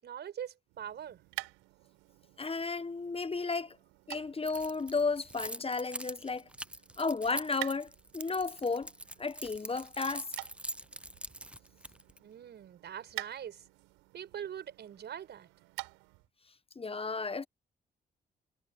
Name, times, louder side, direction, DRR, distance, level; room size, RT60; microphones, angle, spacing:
voice 1, 0.0-1.2 12.2-13.6 14.1-15.5, right 9 dB, 60° right, 5.6 m, -43 dB
sound 1, 0.7-16.3, right 25 dB, 80° right, 6.6 m, -49 dB
voice 2, 2.4-3.8 4.1-6.5 7.0-8.9 9.2-10.3 16.7-17.5, left 4 dB, 30° left, 1.4 m, -33 dB
Keys jangling, 4.5-12.2, right 1 dB, 5° right, 0.9 m, -43 dB
hypercardioid pair, 45°, 20 cm